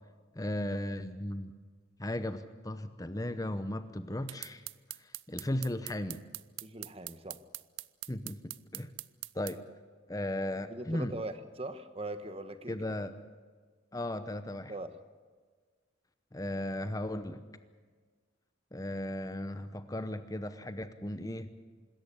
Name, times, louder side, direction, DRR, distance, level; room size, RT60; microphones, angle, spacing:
voice 1, 0.3-1.5 2.0-4.6 5.0-6.2 8.1-8.9 9.3-9.6 10.1-11.2 12.7-13.1 13.9-14.7 16.3-17.4 18.7-21.5, left 1 dB, 20° left, 11 dB, 0.8 m, -36 dB
sound 1, 4.3-9.6, right 18 dB, 80° right, 0.6 m, -42 dB
voice 2, 6.6-7.4 10.7-12.8 14.7-14.9, right 1 dB, 30° right, 10 dB, 1.2 m, -40 dB
25.5 x 14.0 x 9.9 m, 1.5 s
head